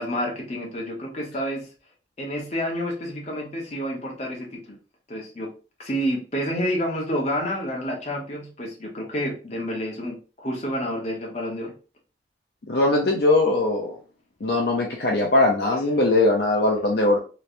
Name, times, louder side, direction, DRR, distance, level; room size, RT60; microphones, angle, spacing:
voice 1, 0.0-1.7 2.2-4.8 5.1-5.5 5.8-11.7, equal, 40° left, -1 dB, 1.1 m, -29 dB
voice 2, 12.7-14.0 14.4-17.2, left 2 dB, 65° left, 0 dB, 0.6 m, -20 dB
3.2 x 3.0 x 2.5 m, 0.34 s
head